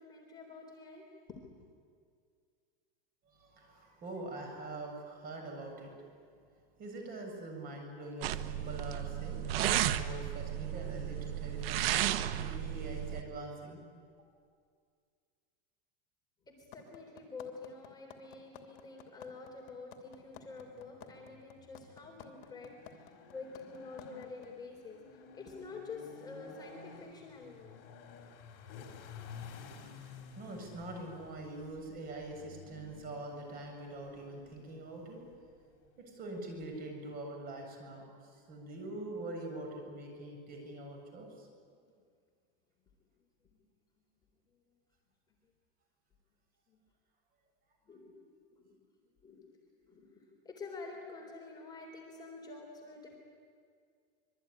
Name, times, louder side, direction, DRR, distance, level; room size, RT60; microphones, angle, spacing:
voice 1, 0.0-1.4 16.5-25.0 25.3-27.8 41.7-41.9 46.7-46.8 47.9-48.1 48.5-48.8 49.2-49.5 49.8-53.2, left 3 dB, 15° left, 0 dB, 3.8 m, -48 dB
voice 2, 3.3-5.9 6.8-13.8 29.8-35.2 36.0-41.5, right 2 dB, 30° right, 3 dB, 7.3 m, -44 dB
sound 1, 8.2-13.2, right 11 dB, 75° right, 1.4 m, -33 dB
sound 2, 16.7-24.5, left 14 dB, 60° left, 3.0 m, -52 dB
sound 3, 20.2-36.9, left 6 dB, 45° left, 4.7 m, -53 dB
26.0 x 23.0 x 9.9 m, 2.1 s
supercardioid pair, 160°, 29 cm